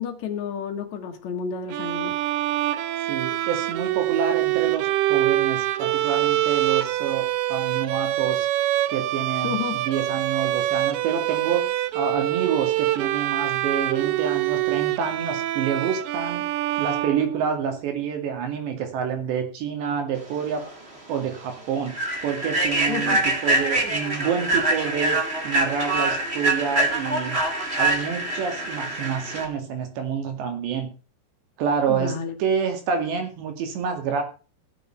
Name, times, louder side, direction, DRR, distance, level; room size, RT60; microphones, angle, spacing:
voice 1, 0.0-2.2 9.4-9.8 22.9-23.2 31.9-32.3, left 7 dB, 85° left, 1.5 m, -30 dB
Bowed string instrument, 1.7-17.8, right 14 dB, 90° right, 2.2 m, -25 dB
voice 2, 3.1-8.5 8.9-16.5 16.8-20.7 21.1-21.9 22.2-27.4 27.8-30.9 31.6-34.2, right 7 dB, 65° right, 4.3 m, -28 dB
Human voice / Train, 20.6-20.7 21.2-21.3 21.9-29.4, right 2 dB, 30° right, 1.1 m, -25 dB
16.5 x 7.1 x 5.8 m
omnidirectional pair, 5.7 m